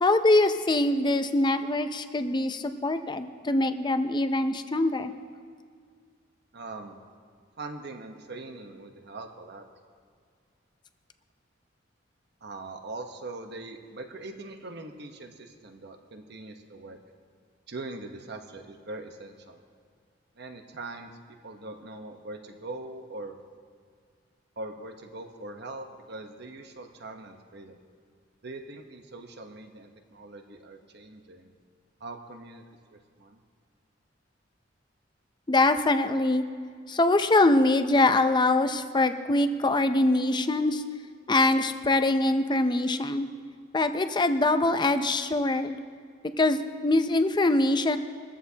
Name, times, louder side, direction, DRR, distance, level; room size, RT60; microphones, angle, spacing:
voice 1, 0.0-5.1 35.5-36.4 36.9-40.8 41.3-43.3 43.7-45.8 46.4-48.0, left 2 dB, 25° left, 9 dB, 0.6 m, -23 dB
voice 2, 6.5-7.0 7.6-9.6 12.4-17.0 17.7-19.6 20.3-21.2 21.4-23.3 24.6-27.8 28.4-31.5 32.0-32.6 32.9-33.4, right 2 dB, 60° right, 5 dB, 1.1 m, -42 dB
21.0 x 14.5 x 2.9 m, 2.1 s
head